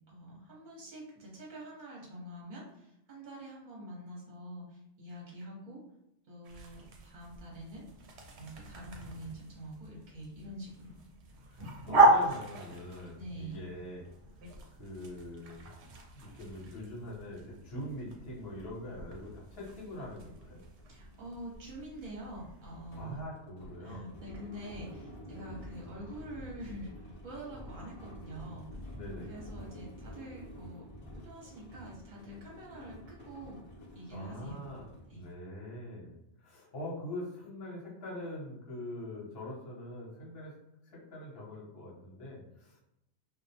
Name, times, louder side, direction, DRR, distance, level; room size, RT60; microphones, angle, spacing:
voice 1, 0.1-5.8 6.3-7.8 8.3-11.0 13.2-13.6 20.9-23.2 23.8-28.9 29.3-30.8 31.2-33.6 33.9-34.6 35.1-35.2, right 1 dB, 45° right, -4 dB, 0.9 m, -46 dB
sound 1, 6.4-23.3, right 2 dB, 75° right, 0.8 m, -35 dB
voice 2, 11.5-14.1 14.8-15.7 16.1-20.6 23.0-24.1 25.2-25.5 28.9-29.4 34.1-36.1 36.4-40.5 40.9-42.8, left 1 dB, 60° left, -4 dB, 1.0 m, -43 dB
sound 2, 20.2-20.3 20.6-35.4, equal, 30° left, 0.7 m, -49 dB
2.3 x 2.1 x 2.7 m, 0.87 s
omnidirectional pair, 1.2 m